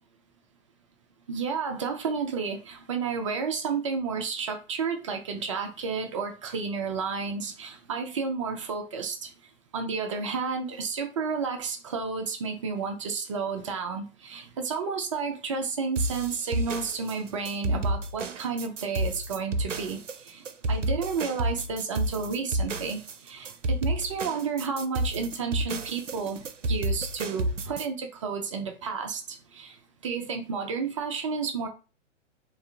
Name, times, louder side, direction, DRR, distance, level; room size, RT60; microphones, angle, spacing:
voice 1, 1.3-9.3 9.7-29.8 30.0-31.7, right 5 dB, 25° right, 5 dB, 0.4 m, -31 dB
sound 1, 16.0-27.9, right 1 dB, 80° right, 0.5 m, -30 dB
3.6 x 2.4 x 3.2 m, 0.32 s
figure-of-eight pair, 110°, 37 cm